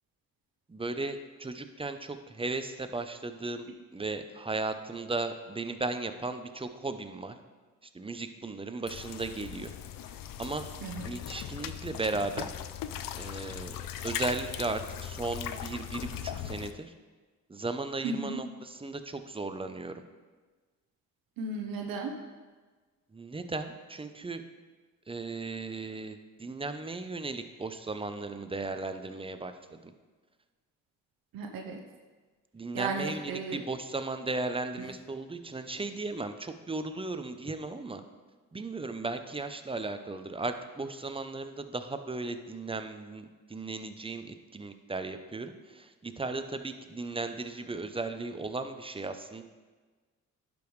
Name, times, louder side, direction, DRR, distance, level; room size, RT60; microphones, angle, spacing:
voice 1, 0.7-7.4 7.9-9.7 10.4-10.7 11.0-12.5 13.2-13.8 14.0-16.9 17.5-20.0 23.1-24.4 25.1-29.9 32.5-38.0 38.5-49.4, right 3 dB, 15° right, 9 dB, 0.6 m, -36 dB
sound 1, 8.9-16.7, left 10 dB, 75° left, 0.5 m, -39 dB
voice 2, 18.0-18.4 21.4-22.1 31.3-31.8 32.7-33.6 34.8-34.9, right 3 dB, 90° right, 3 dB, 0.8 m, -35 dB
11.5 x 5.3 x 3.2 m, 1.4 s
cardioid pair, 70°, 34 cm